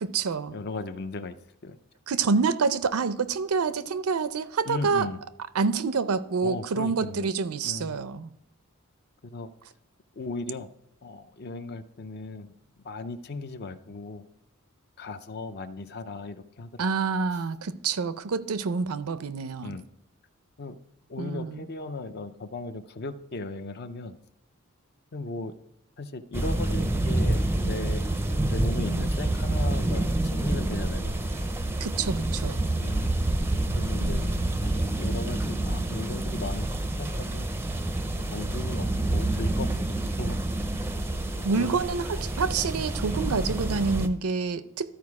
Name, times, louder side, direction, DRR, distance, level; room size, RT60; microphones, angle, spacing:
voice 1, 0.0-0.5 2.1-5.1 5.6-8.3 16.8-19.7 21.2-21.6 31.8-32.7 34.0-34.5 41.4-45.0, right 5 dB, 85° right, 0.5 m, -27 dB
voice 2, 0.5-1.4 1.6-1.8 4.7-5.2 6.4-7.3 7.6-8.0 9.2-9.5 10.1-10.7 11.0-12.5 12.8-14.2 15.0-16.9 19.6-19.8 20.6-20.8 21.1-24.2 25.1-25.5 26.0-31.2 32.7-33.1 33.8-34.2 34.6-37.5 38.2-39.8 40.2-40.4 41.4-41.8, left 3 dB, 50° left, 0.5 m, -37 dB
sound 1, 26.3-44.1, right 1 dB, 10° right, 0.5 m, -28 dB
13.0 x 4.7 x 4.8 m
head